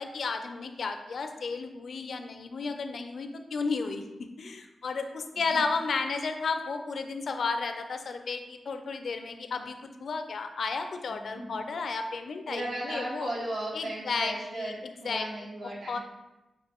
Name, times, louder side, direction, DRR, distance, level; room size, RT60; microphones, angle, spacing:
voice 1, 0.0-13.3 13.7-15.3 15.9-16.0, left 4 dB, 70° left, 7 dB, 0.4 m, -33 dB
voice 2, 11.1-11.7 12.5-16.0, right 1 dB, 85° right, -5 dB, 1.5 m, -36 dB
7.2 x 2.5 x 2.9 m, 1.0 s
wide cardioid pair, 140°, 0 cm